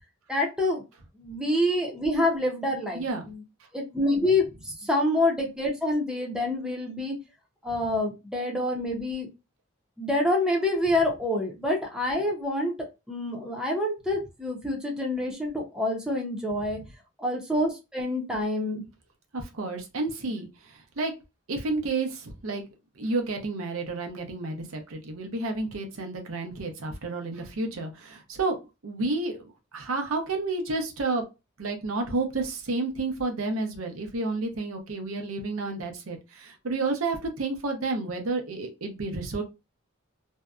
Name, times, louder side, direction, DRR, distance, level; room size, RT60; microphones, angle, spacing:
voice 1, 0.3-0.8 1.2-3.4 3.7-7.2 7.6-9.3 10.0-12.7 13.1-16.8 17.2-18.8, left 1 dB, 5° right, 0.6 m, -27 dB
voice 2, 2.9-3.3 19.3-21.1 21.5-22.6 23.0-31.2 31.6-39.4, right 3 dB, 90° right, 0.7 m, -31 dB
2.6 x 2.1 x 2.3 m
head